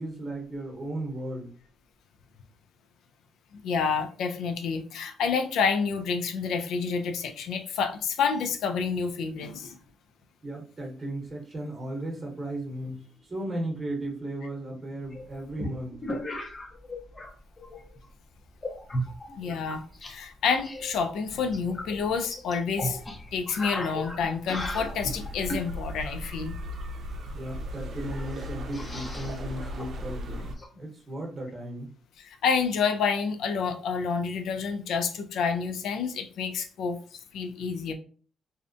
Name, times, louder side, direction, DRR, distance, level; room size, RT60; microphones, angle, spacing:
voice 1, 0.0-1.5 10.4-15.9 27.3-31.9, right 1 dB, 25° right, -1 dB, 0.9 m, -36 dB
voice 2, 3.5-9.8 19.4-23.0 23.3-26.6 32.2-37.9, left 5 dB, 75° left, 7 dB, 0.4 m, -29 dB
sound 1, 15.1-17.3 17.6-18.0 18.6-20.1 20.4-25.7 27.4-27.5 27.7-27.8 28.1-30.7, equal, 30° left, 0.6 m, -36 dB
sound 2, 24.5-30.5, equal, 65° right, 0.5 m, -37 dB
2.6 x 2.1 x 2.5 m, 0.42 s
cardioid pair, 90°, 0 cm